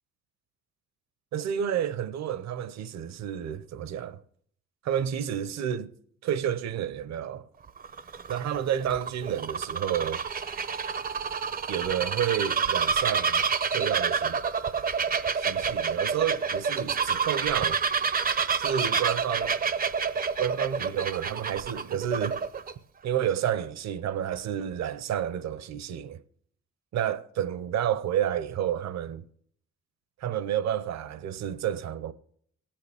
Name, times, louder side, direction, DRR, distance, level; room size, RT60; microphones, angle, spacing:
voice 1, 1.3-4.2 4.8-5.9 6.2-7.5 8.3-10.2 11.7-14.4 15.3-17.8 18.6-19.6 20.4-22.4 23.0-26.2 26.9-29.2 30.2-32.1, right 9 dB, 65° right, 0.8 m, -30 dB
Bird vocalization bird call bird song, 7.7-22.7, right 6 dB, 30° right, 0.6 m, -28 dB
17.5 x 8.7 x 3.4 m
cardioid pair, 90°, 30 cm